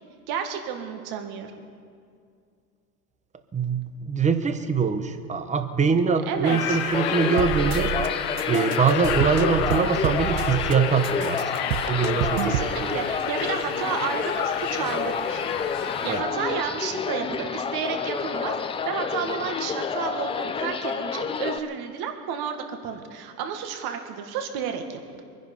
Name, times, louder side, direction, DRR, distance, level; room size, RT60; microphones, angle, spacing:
voice 1, 0.3-1.7 6.3-6.8 12.4-15.4 15.8-25.2, right 7 dB, 50° right, 5 dB, 2.0 m, -31 dB
voice 2, 3.5-7.9 8.5-12.9 16.1-16.2, right 5 dB, 15° right, 9 dB, 0.9 m, -24 dB
sound 1, 6.4-16.2, left 9 dB, 65° left, 1.3 m, -31 dB
sound 2, 6.9-21.6, left 5 dB, 15° left, 0.4 m, -29 dB
sound 3, 7.4-8.1 8.4-10.7 11.0-12.7, right 12 dB, 85° right, 0.8 m, -29 dB
23.0 x 10.5 x 5.4 m, 2.3 s
supercardioid pair, 120°, 48 cm